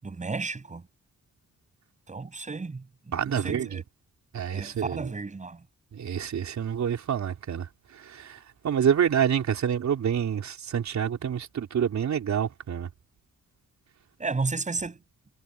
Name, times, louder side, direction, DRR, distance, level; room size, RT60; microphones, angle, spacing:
voice 1, 0.0-0.8 2.1-3.8 4.5-5.6 14.2-15.0, right 4 dB, 25° right, 7.7 m, -33 dB
voice 2, 3.1-3.7 4.3-5.1 5.9-7.7 8.1-8.4 8.6-12.9, right 8 dB, 60° right, 4.1 m, -27 dB
wide cardioid pair, 180°, 31 cm